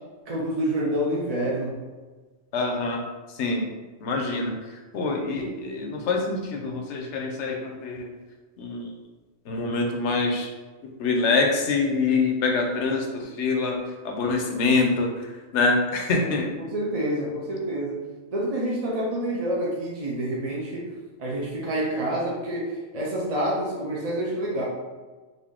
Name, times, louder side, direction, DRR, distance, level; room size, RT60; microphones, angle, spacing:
voice 1, 0.3-1.8 16.7-18.0 18.3-20.8 21.2-24.6, right 1 dB, 40° right, -4 dB, 0.6 m, -27 dB
voice 2, 2.5-3.0 3.3-3.7 4.0-8.1 8.6-8.9 9.4-10.5 10.8-16.5, left 3 dB, 85° left, 2 dB, 1.0 m, -25 dB
3.9 x 2.6 x 3.5 m, 1.3 s
omnidirectional pair, 1.2 m